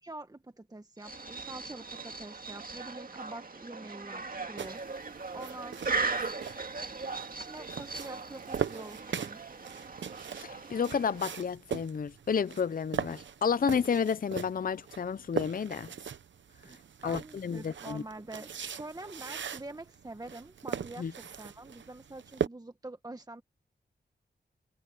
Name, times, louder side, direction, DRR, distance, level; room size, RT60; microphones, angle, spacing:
voice 1, 0.0-6.3 7.0-9.4 16.6-16.8 17.0-23.4, right 2 dB, 20° right, 1.3 m, -46 dB
sound 1, 1.0-11.4, right 4 dB, 50° right, 2.0 m, -38 dB
sound 2, 4.6-22.5, right 7 dB, 90° right, 0.9 m, -40 dB
voice 2, 10.4-15.9 17.0-18.0 21.0-21.1, left 6 dB, 50° left, 0.5 m, -31 dB
wide cardioid pair, 75°, 19 cm